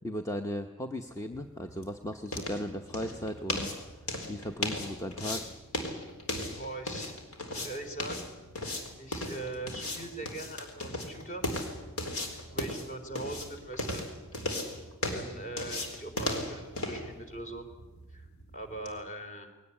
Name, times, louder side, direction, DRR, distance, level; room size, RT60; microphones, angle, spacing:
voice 1, 0.0-3.8 4.3-5.5, left 1 dB, 15° left, 6 dB, 0.8 m, -36 dB
Footsteps - sneakers on concrete (walking), 1.2-19.0, left 1 dB, 75° left, 4.2 m, -37 dB
voice 2, 6.5-7.2 7.5-8.3 9.0-11.5 12.3-14.1 15.1-17.7 18.1-19.5, right 2 dB, 35° left, 5 dB, 3.7 m, -41 dB
21.5 x 18.5 x 10.0 m, 1.1 s
head